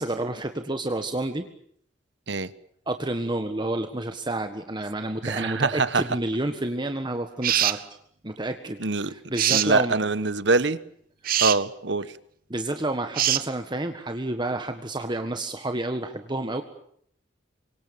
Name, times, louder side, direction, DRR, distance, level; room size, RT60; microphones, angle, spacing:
voice 1, 0.0-1.5 2.9-7.8 8.2-9.9 11.2-11.3 12.5-16.6, right 2 dB, 25° right, 1.6 m, -30 dB
voice 2, 5.2-6.0 7.5-7.6 8.8-9.1 9.5-10.8 11.4-12.1, right 3 dB, 70° right, 1.3 m, -24 dB
sound 1, 7.4-7.8 9.4-9.7 11.2-11.6 13.1-13.4, right 11 dB, 55° right, 1.0 m, -23 dB
28.0 x 24.5 x 7.0 m
head